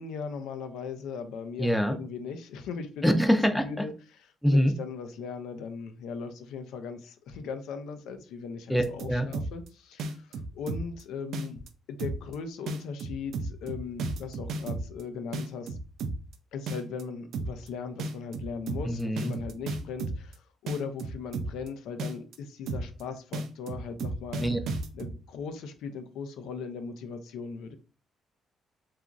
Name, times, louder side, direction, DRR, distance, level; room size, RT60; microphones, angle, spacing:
voice 1, 0.0-3.2 3.5-3.9 4.4-11.6 11.9-15.8 16.5-24.5 24.9-27.8, left 5 dB, 90° left, 0.4 m, -38 dB
voice 2, 1.6-2.0 3.0-3.8 4.4-4.7 8.7-9.3 18.9-19.3 24.4-24.6, equal, ahead, 0.4 m, -24 dB
sound 1, 8.7-9.7 10.0-11.0 11.3-11.7 12.0-12.3 12.7-15.0 15.3-16.3 16.7-17.0 17.3-17.7 18.0-20.3 20.7-21.7 22.0-22.4 22.7-23.0 23.3-25.1, right 3 dB, 80° right, 0.3 m, -33 dB
2.9 x 2.4 x 2.4 m
cardioid pair, 90°, 0 cm